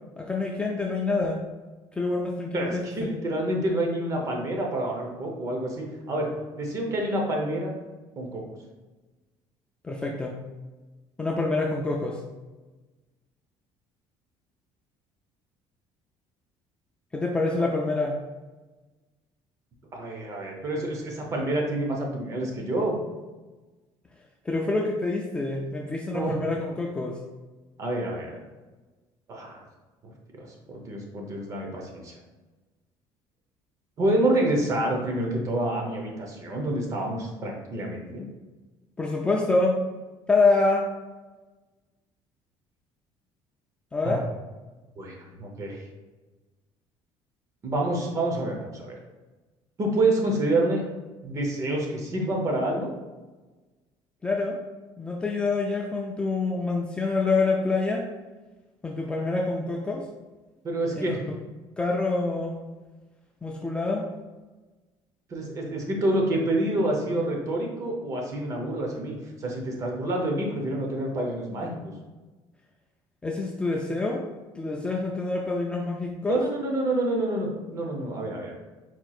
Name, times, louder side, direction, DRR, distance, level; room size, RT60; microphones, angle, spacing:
voice 1, 0.2-1.4 1.9-3.1 9.8-10.4 11.2-12.2 17.1-18.2 24.5-27.2 39.0-39.8 40.3-40.8 43.9-44.2 54.2-54.6 55.0-58.1 58.8-60.1 61.0-61.1 61.8-62.6 63.4-64.1 73.2-74.3 74.6-76.4, left 3 dB, 10° left, -1 dB, 0.3 m, -26 dB
voice 2, 2.5-6.3 6.6-7.7 8.2-8.4 19.9-22.9 26.1-26.3 27.8-28.4 29.3-29.6 30.3-32.1 34.0-38.2 44.0-44.2 45.0-45.8 47.6-48.9 49.8-50.8 51.2-52.9 60.6-61.3 65.3-71.9 76.3-78.5, right 1 dB, 30° right, 1 dB, 0.8 m, -28 dB
4.5 x 4.3 x 2.4 m, 1.2 s
cardioid pair, 170°, 10 cm